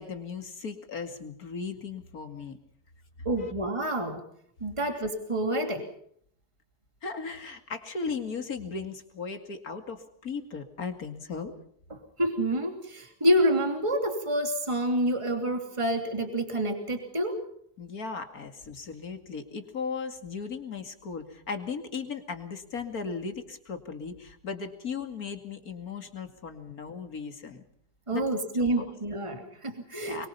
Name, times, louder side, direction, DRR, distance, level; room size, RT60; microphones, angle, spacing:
voice 1, 0.0-2.6 3.2-3.5 7.0-11.5 17.8-27.6 28.1-28.2 28.5-28.8 30.0-30.3, left 5 dB, 70° left, 7 dB, 2.8 m, -37 dB
voice 2, 3.2-4.2 4.6-5.9 11.9-17.4 28.1-30.3, right 1 dB, 20° right, 4 dB, 2.9 m, -28 dB
23.5 x 23.5 x 5.5 m, 0.66 s
omnidirectional pair, 1.6 m